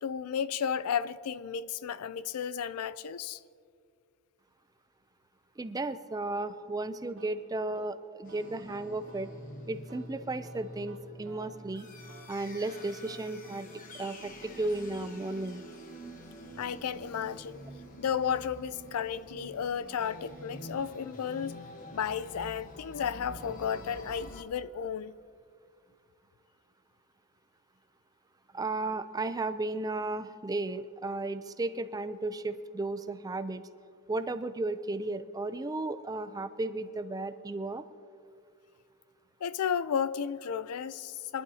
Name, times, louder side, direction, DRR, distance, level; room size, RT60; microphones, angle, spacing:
voice 1, 0.0-3.4 16.6-17.6 18.0-21.6 21.9-25.1 39.4-41.4, left 7 dB, 85° left, 0.4 m, -33 dB
voice 2, 5.6-9.3 9.7-11.9 12.3-15.6 28.5-33.7 34.1-37.8, right 2 dB, 15° right, 0.4 m, -34 dB
sound 1, 7.2-15.7, right 3 dB, 60° right, 0.9 m, -56 dB
sound 2, 8.3-24.4, equal, 40° left, 1.1 m, -47 dB
23.0 x 11.5 x 2.8 m
head